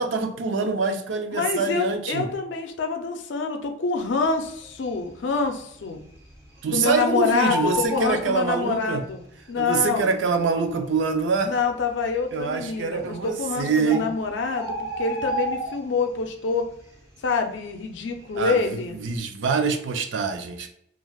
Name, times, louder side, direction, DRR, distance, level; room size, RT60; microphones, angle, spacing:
voice 1, 0.0-2.3 6.6-9.0 9.6-11.5 12.3-14.1 18.4-20.7, right 4 dB, 80° right, 7 dB, 0.4 m, -25 dB
voice 2, 1.3-6.0 6.7-10.1 11.4-16.7 17.2-19.0, left 4 dB, 80° left, 5 dB, 0.4 m, -26 dB
Bird, 4.5-5.1 5.4-5.5 5.8-7.0 7.2-9.1 9.9-10.0 10.6-10.7 10.9-11.1 11.7-12.2 13.1-13.2 13.6-13.7 13.9-16.2 16.5-16.8 17.2-18.5 18.9-19.1, equal, 15° right, 0.8 m, -32 dB
3.3 x 2.4 x 2.3 m, 0.72 s
head